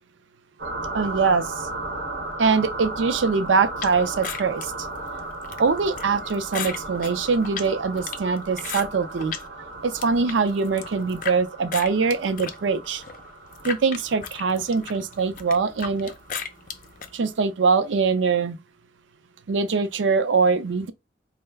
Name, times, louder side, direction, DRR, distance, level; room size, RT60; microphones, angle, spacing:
sound 1, 0.6-16.9, right 2 dB, 65° right, 1.0 m, -36 dB
voice 1, 0.9-1.5 2.4-4.7 5.6-9.3 9.8-13.0 13.6-16.1 17.1-18.6 19.5-20.9, right 4 dB, 90° right, 0.5 m, -23 dB
Disgusting Slop, 3.8-9.5 9.8-11.4 11.7-17.1, left 6 dB, 45° left, 0.5 m, -36 dB
4.5 x 2.1 x 3.3 m
head